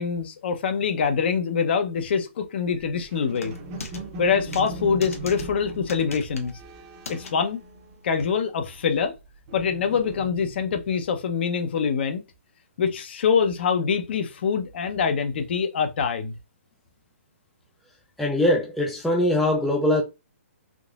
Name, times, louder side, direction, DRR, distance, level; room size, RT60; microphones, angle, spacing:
voice 1, 0.0-3.5 4.2-6.6 7.1-7.6 8.0-9.1 9.5-12.2 12.8-16.3, left 6 dB, 50° left, 0.8 m, -24 dB
sound 1, 2.7-8.3 8.6-10.8, right 2 dB, 30° right, 0.7 m, -40 dB
sound 2, 3.4-4.0 4.5-4.7 5.0-5.4 5.9-6.5 7.0-7.3 8.2-8.3, left 4 dB, 85° left, 0.9 m, -38 dB
voice 2, 18.2-20.0, left 1 dB, ahead, 0.4 m, -22 dB
3.7 x 2.9 x 2.4 m
hypercardioid pair, 155°, 7 cm